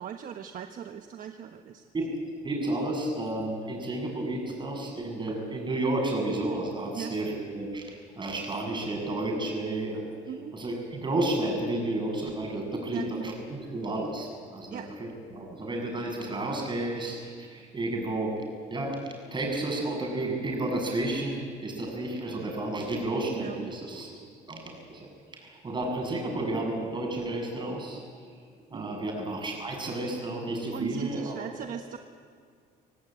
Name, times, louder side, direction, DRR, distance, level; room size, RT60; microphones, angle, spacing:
voice 1, 0.0-1.8 6.9-7.1 10.3-10.5 12.9-13.3 14.7-14.9 23.3-23.7 28.7-28.9 30.7-32.0, right 8 dB, 55° right, 6 dB, 1.2 m, -38 dB
voice 2, 2.4-10.1 10.5-18.4 18.7-19.0 19.3-24.2 24.5-28.0 28.7-31.7, right 2 dB, 25° right, 1 dB, 7.6 m, -32 dB
26.0 x 17.5 x 9.0 m, 2.1 s
cardioid pair, 110°, 17 cm